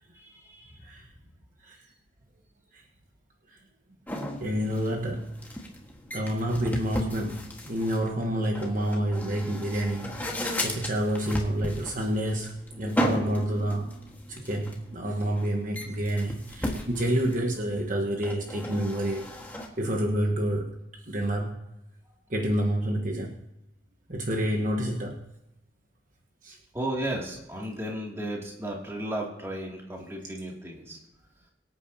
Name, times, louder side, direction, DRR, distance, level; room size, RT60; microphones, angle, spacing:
voice 1, 0.1-0.9 26.7-31.0, right 1 dB, 15° right, -2 dB, 2.6 m, -34 dB
sound 1, 4.1-19.7, equal, 10° left, 1.6 m, -36 dB
voice 2, 4.4-5.3 6.1-14.0 14.3-19.3 19.8-20.8 21.1-21.6 22.3-23.4 24.1-25.2 26.4-26.6, right 1 dB, 45° right, 2 dB, 1.2 m, -28 dB
23.5 x 8.9 x 2.8 m, 0.89 s
head